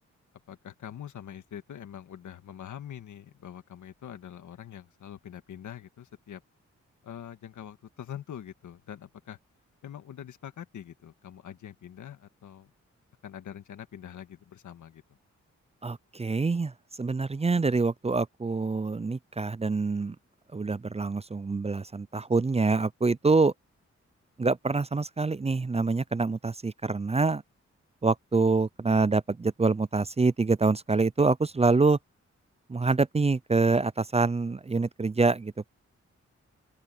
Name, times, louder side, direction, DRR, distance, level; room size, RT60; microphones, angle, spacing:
voice 1, 0.5-6.4 7.0-9.4 9.8-12.7 13.2-15.0, left 9 dB, 85° left, 1.8 m, -44 dB
voice 2, 15.8-16.7 17.0-20.2 20.5-23.5 24.4-27.4 28.0-32.0 32.7-35.7, right 3 dB, 20° right, 0.5 m, -26 dB
open air
cardioid pair, 55°, 29 cm